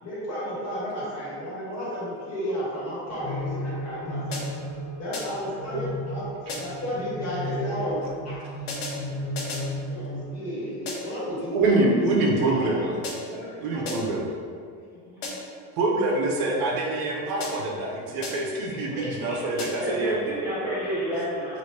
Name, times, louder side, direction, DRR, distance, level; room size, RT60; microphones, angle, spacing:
voice 1, 0.0-4.4 4.9-8.4 9.9-12.9 13.7-14.0 14.9-15.4 18.2-18.3 18.7-19.7, equal, 40° left, -8 dB, 1.4 m, -33 dB
sound 1, 3.1-10.2, equal, 10° left, 0.4 m, -34 dB
sound 2, 4.3-4.7 5.1-5.5 6.5-6.9 8.7-9.8 10.8-11.3 13.0-13.5 13.8-14.3 15.2-15.6 17.4-17.8 18.2-18.6 19.6-20.0, left 2 dB, 60° left, 0.9 m, -36 dB
voice 2, 11.5-13.0 13.6-14.3 15.8-20.2, right 2 dB, 60° right, -1 dB, 0.6 m, -25 dB
voice 3, 13.3-13.6 18.9-19.0 19.6-21.6, right 1 dB, 5° right, -9 dB, 0.9 m, -30 dB
2.9 x 2.5 x 3.2 m, 2.2 s
supercardioid pair, 125°, 40 cm